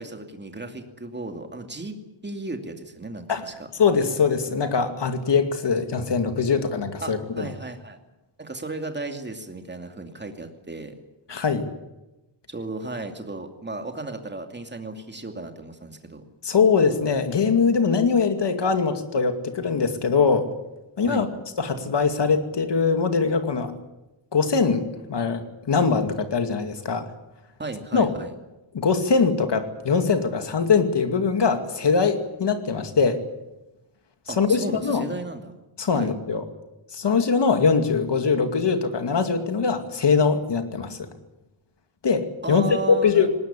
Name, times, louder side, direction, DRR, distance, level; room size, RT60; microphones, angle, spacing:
voice 1, 0.0-2.0 2.2-3.5 7.0-8.0 8.4-10.9 12.5-16.2 21.0-21.3 27.6-28.3 34.3-35.5 35.9-36.1 42.4-43.3, right 2 dB, 20° right, 5 dB, 2.6 m, -35 dB
voice 2, 3.8-7.5 11.3-11.7 16.4-20.5 21.0-21.3 21.6-23.7 24.3-27.0 27.9-28.1 28.7-33.2 34.3-35.0 35.8-36.4 36.9-41.1 42.0-43.3, left 5 dB, 60° left, 7 dB, 2.4 m, -22 dB
19.5 x 19.0 x 9.9 m, 1.0 s
wide cardioid pair, 175°, 48 cm